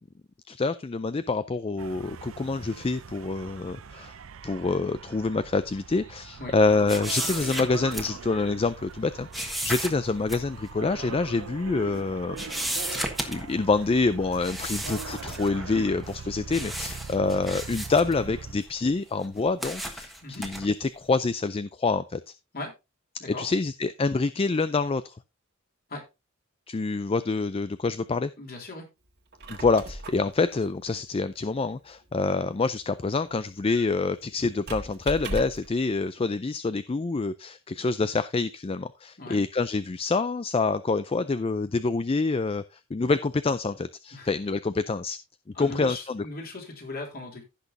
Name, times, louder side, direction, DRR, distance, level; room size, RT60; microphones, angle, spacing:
voice 1, 0.5-4.2 4.4-12.4 12.9-20.1 20.4-22.2 23.3-25.1 26.7-28.3 29.5-45.2 45.6-46.2, left 3 dB, 30° left, 13 dB, 0.4 m, -26 dB
sound 1, 1.8-18.5, right 5 dB, 80° right, 0.6 m, -41 dB
sound 2, 6.9-8.5 9.3-10.5 10.9-11.0 11.7-12.0 12.4-13.6 14.3-15.7 16.0-16.2 16.5-18.7 19.2-20.7, right 1 dB, ahead, 1.4 m, -34 dB
voice 2, 28.4-28.9 39.2-39.4 44.1-44.3 45.5-47.4, left 2 dB, 50° left, 1 dB, 3.4 m, -38 dB
Squeak, 29.2-35.8, right 1 dB, 55° right, 1.7 m, -40 dB
15.5 x 6.1 x 2.7 m, 0.25 s
head